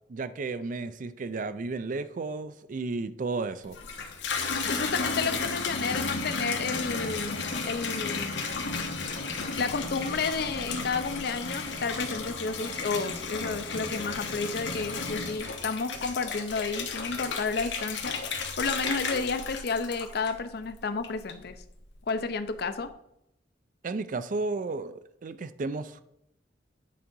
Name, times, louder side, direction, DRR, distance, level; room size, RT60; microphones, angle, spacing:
voice 1, 0.1-3.8 23.8-26.0, right 3 dB, 45° right, 0.4 m, -33 dB
Water tap faucet / Bathtub (filling or washing), 3.6-20.6 21.0-21.6, left 4 dB, 85° left, 1.2 m, -33 dB
voice 2, 4.7-8.4 9.5-18.2 18.6-21.6 22.1-22.9, left 4 dB, 60° left, 0.6 m, -31 dB
8.6 x 3.8 x 5.3 m
head